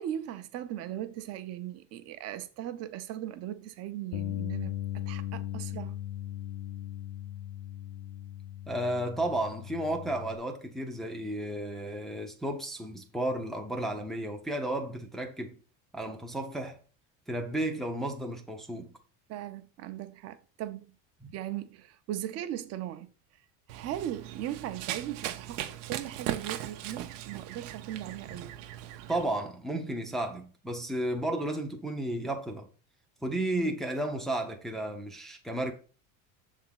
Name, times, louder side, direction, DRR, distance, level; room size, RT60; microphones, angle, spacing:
voice 1, 0.0-6.0 19.3-20.9 21.3-23.1 23.7-28.5, right 12 dB, 40° right, 0.7 m, -38 dB
Bass guitar, 4.1-10.4, left 12 dB, 70° left, 0.6 m, -38 dB
voice 2, 8.7-15.6 15.9-16.8 17.3-18.9 21.2-21.3 28.3-28.4 29.1-32.7 33.2-35.7, right 1 dB, ahead, 0.5 m, -33 dB
Run, 23.7-29.2, right 12 dB, 75° right, 0.8 m, -39 dB
7.1 x 3.6 x 5.6 m
cardioid pair, 170°, 39 cm